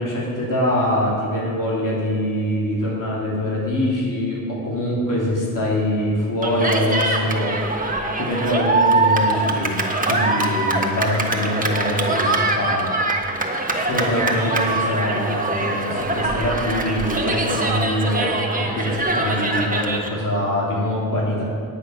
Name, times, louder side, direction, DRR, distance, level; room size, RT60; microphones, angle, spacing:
voice 1, 0.0-7.5 8.2-9.8 10.1-12.9 13.2-13.3 13.7-21.4, left 1 dB, 65° left, -5 dB, 3.0 m, -24 dB
Cheering, 6.4-20.1, right 2 dB, 25° right, 1.4 m, -23 dB
10.0 x 8.7 x 5.7 m, 2.1 s
cardioid pair, 75°, 34 cm